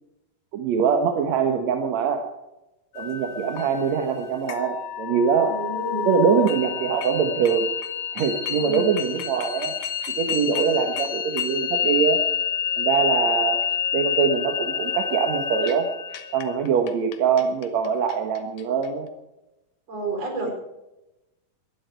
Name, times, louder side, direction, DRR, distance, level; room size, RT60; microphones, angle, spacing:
voice 1, 0.5-2.3 3.0-5.6 6.1-7.7 8.1-9.8 10.2-12.2 12.8-13.6 13.9-15.9 16.3-19.1, right 6 dB, 60° right, 4 dB, 2.2 m, -23 dB
sound 1, 3.0-18.9, left 8 dB, 65° left, 2.4 m, -28 dB
voice 2, 3.0-3.6 5.4-6.1 8.5-8.9 19.9-20.5, right 2 dB, 45° right, 2 dB, 5.2 m, -31 dB
20.5 x 12.0 x 4.6 m, 0.95 s
omnidirectional pair, 4.1 m